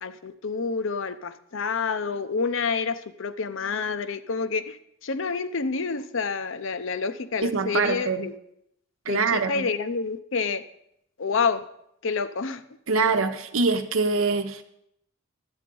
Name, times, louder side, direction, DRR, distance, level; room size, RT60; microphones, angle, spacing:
voice 1, 0.0-4.8 5.0-8.3 9.1-10.6 11.2-11.6 12.0-12.6, left 5 dB, 65° left, 0.7 m, -28 dB
voice 2, 7.4-8.3 9.1-9.7 12.9-14.6, right 4 dB, 80° right, 0.9 m, -24 dB
11.5 x 8.8 x 5.3 m
head